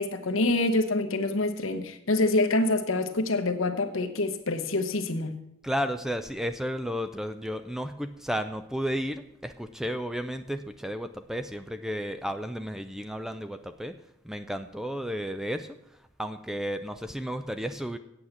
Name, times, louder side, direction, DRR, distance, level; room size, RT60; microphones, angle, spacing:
voice 1, 0.0-5.4, left 2 dB, 65° left, 1.0 m, -26 dB
voice 2, 5.6-18.0, equal, ahead, 0.4 m, -33 dB
8.5 x 7.9 x 7.2 m
head